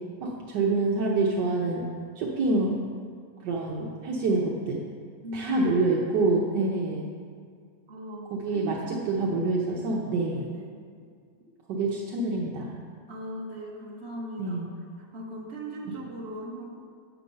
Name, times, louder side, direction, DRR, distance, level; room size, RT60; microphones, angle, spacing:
voice 1, 0.2-1.8 2.2-2.8 3.4-4.8 5.3-7.0 8.3-10.5 11.7-12.7 14.4-14.7, right 3 dB, 75° right, -3 dB, 1.5 m, -26 dB
voice 2, 5.2-5.8 7.9-9.2 10.3-10.8 13.1-14.7 15.0-16.9, right 1 dB, 40° right, -1 dB, 1.2 m, -39 dB
7.4 x 7.1 x 5.4 m, 2.1 s
omnidirectional pair, 1.9 m